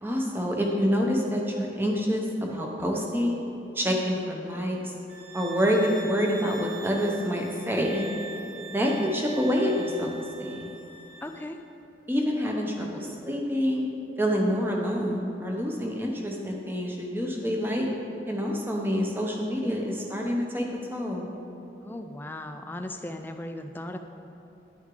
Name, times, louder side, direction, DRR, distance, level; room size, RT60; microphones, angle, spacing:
voice 1, 0.0-3.4 3.7-4.9 5.3-8.0 8.7-10.1 10.4-10.7 12.1-13.8 14.2-17.9 18.3-20.6 20.9-21.3, equal, 10° right, 0 dB, 0.8 m, -27 dB
sound 1, 5.1-11.5, right 3 dB, 35° right, 1.3 m, -43 dB
voice 2, 8.9-9.2 11.2-11.6 21.8-24.0, left 1 dB, 10° left, 6 dB, 0.3 m, -37 dB
11.0 x 6.2 x 3.8 m, 3.0 s
head